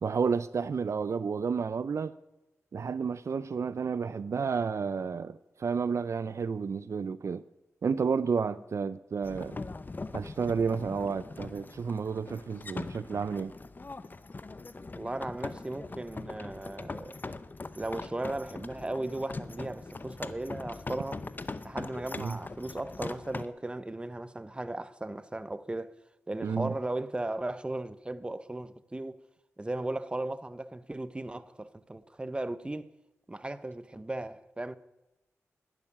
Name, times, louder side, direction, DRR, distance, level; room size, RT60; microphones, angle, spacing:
voice 1, 0.0-2.2 2.7-7.4 7.8-9.6 10.1-13.5 22.2-22.4 26.4-26.7, right 5 dB, 65° right, 0.5 m, -31 dB
sound 1, 9.2-23.4, left 3 dB, 35° left, 0.7 m, -41 dB
voice 2, 15.0-17.2 17.8-21.2 21.6-26.0 26.3-29.2 29.6-32.9 33.3-34.8, right 2 dB, 20° right, 0.7 m, -36 dB
11.0 x 10.0 x 10.0 m
cardioid pair, 65°, 5 cm